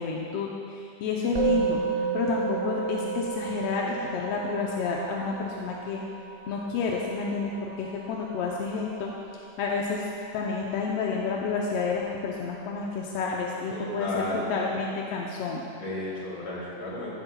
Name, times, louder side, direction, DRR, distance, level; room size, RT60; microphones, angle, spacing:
voice 1, 0.0-6.0 6.5-9.1 9.6-10.1 10.3-15.6, left 4 dB, 75° left, -2 dB, 1.5 m, -30 dB
Musical instrument, 1.4-10.9, right 6 dB, 50° right, 0.8 m, -33 dB
voice 2, 13.7-14.6 15.7-17.1, left 1 dB, 40° left, -7 dB, 3.5 m, -33 dB
14.5 x 11.5 x 2.3 m, 2.4 s
omnidirectional pair, 3.4 m